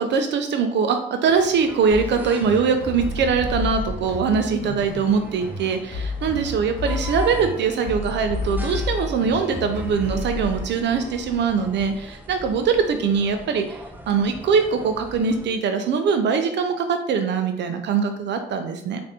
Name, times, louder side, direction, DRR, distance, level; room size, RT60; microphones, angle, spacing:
voice 1, 0.0-19.0, right 5 dB, 65° right, 7 dB, 0.4 m, -22 dB
sound 1, 1.2-15.5, right 1 dB, 10° right, 0.5 m, -41 dB
sound 2, 1.9-10.6, left 2 dB, 50° left, 1.0 m, -30 dB
5.1 x 2.5 x 2.7 m, 0.76 s
cardioid pair, 90°, 20 cm